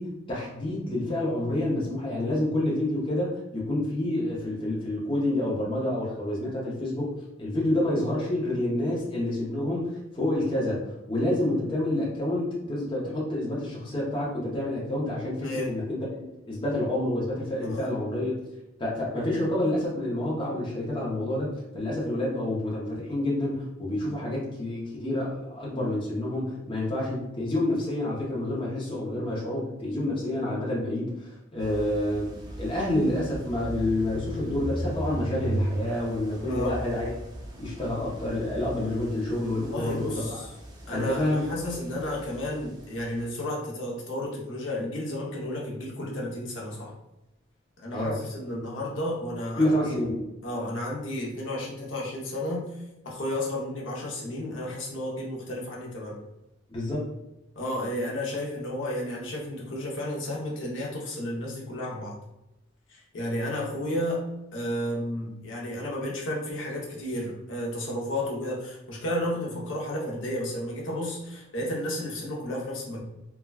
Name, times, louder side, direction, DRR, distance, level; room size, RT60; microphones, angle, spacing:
voice 1, 0.0-7.1 7.4-15.8 16.5-18.3 18.8-32.3 32.6-37.1 37.6-40.4 40.9-41.5 47.9-48.2 49.6-50.3 56.7-57.1, left 1 dB, 25° left, -6 dB, 0.6 m, -28 dB
voice 2, 15.4-15.8 17.6-17.9 27.0-27.2 36.5-36.8 39.4-40.5 40.9-46.9 47.8-49.9 50.4-52.7 53.0-56.1 57.6-62.2 62.9-64.2 64.5-73.0, left 1 dB, 65° left, -3 dB, 0.7 m, -32 dB
sound 1, 31.6-43.3, right 1 dB, 20° right, 0.4 m, -37 dB
3.3 x 2.2 x 2.3 m, 0.91 s
head